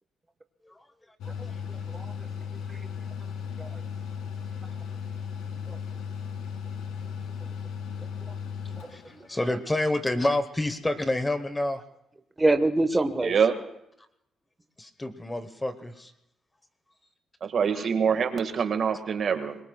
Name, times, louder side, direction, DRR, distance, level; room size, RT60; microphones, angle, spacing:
Mechanical fan, 1.2-9.6, left 7 dB, 85° left, 2.0 m, -36 dB
voice 1, 1.2-2.3 2.7-2.9 3.6-3.8 5.7-5.8 8.3-8.4 8.7-9.5 12.4-13.3, right 2 dB, 15° right, 8 dB, 1.2 m, -28 dB
voice 2, 8.9-11.8 14.8-16.1 17.7-17.9, left 1 dB, 15° left, 10 dB, 1.1 m, -28 dB
voice 3, 13.2-13.5 17.4-19.6, right 6 dB, 55° right, 7 dB, 1.7 m, -25 dB
25.5 x 22.0 x 2.3 m, 0.79 s
cardioid pair, 90°, 0 cm